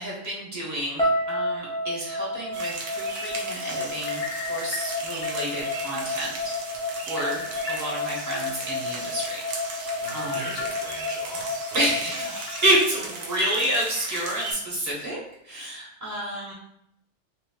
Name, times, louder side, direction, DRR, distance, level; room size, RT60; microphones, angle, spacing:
voice 1, 0.0-4.2 4.5-10.4 11.7-15.2 15.4-16.5, right 1 dB, 15° right, -5 dB, 1.0 m, -29 dB
sound 1, 1.0-13.1, left 1 dB, 5° left, 0.4 m, -31 dB
sound 2, 2.5-14.5, right 3 dB, 85° right, 1.1 m, -37 dB
sound 3, 4.0-5.8 6.2-6.3 7.2-8.2 8.7-8.8 10.1-11.1 11.6-11.7 12.5-12.7, left 4 dB, 80° left, 0.9 m, -38 dB
voice 2, 10.0-13.0, right 2 dB, 65° right, -3 dB, 1.0 m, -40 dB
3.0 x 2.9 x 3.0 m, 0.74 s
omnidirectional pair, 1.2 m